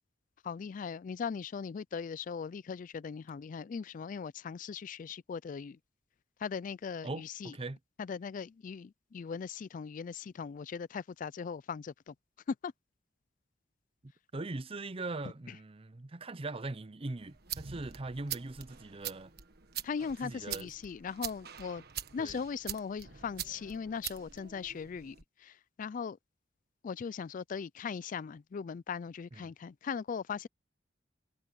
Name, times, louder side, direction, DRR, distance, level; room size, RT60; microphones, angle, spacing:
voice 1, 0.4-5.8 6.4-7.5 8.0-12.1 12.5-12.7 15.5-15.6 19.8-21.8 22.1-26.2 26.8-30.5, left 6 dB, 45° left, 0.3 m, -39 dB
voice 2, 7.0-7.8 14.0-19.3 20.0-20.7 22.2-22.4 29.3-29.5, right 2 dB, 30° right, 0.7 m, -41 dB
sound 1, 17.2-25.2, right 10 dB, 60° right, 1.5 m, -44 dB
head